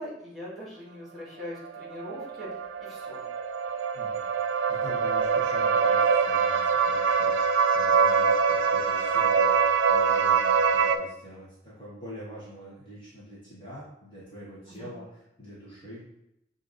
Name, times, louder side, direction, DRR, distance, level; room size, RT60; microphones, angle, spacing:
voice 1, 0.0-3.2 14.7-14.9, left 1 dB, ahead, -8 dB, 1.6 m, -41 dB
sound 1, 1.6-11.0, right 6 dB, 85° right, 0.3 m, -24 dB
voice 2, 4.7-7.5 7.7-16.0, equal, 25° left, -8 dB, 1.1 m, -45 dB
6.5 x 2.7 x 2.5 m, 0.81 s
head